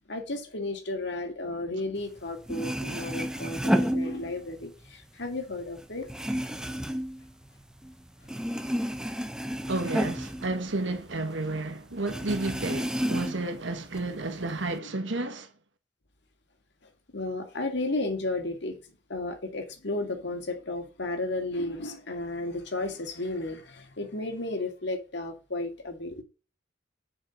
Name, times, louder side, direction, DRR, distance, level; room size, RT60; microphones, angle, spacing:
voice 1, 0.1-6.1 14.8-14.9 16.8-18.8 19.1-26.2, left 2 dB, 65° left, 2.2 m, -33 dB
sound 1, 2.2-2.3 2.4-4.7 5.0-7.9 8.2-11.2 11.5-11.6 12.1-13.6 13.9-14.7, equal, 5° right, 0.8 m, -31 dB
voice 2, 9.7-15.5, right 2 dB, 70° right, 1.5 m, -31 dB
7.6 x 5.8 x 5.4 m
head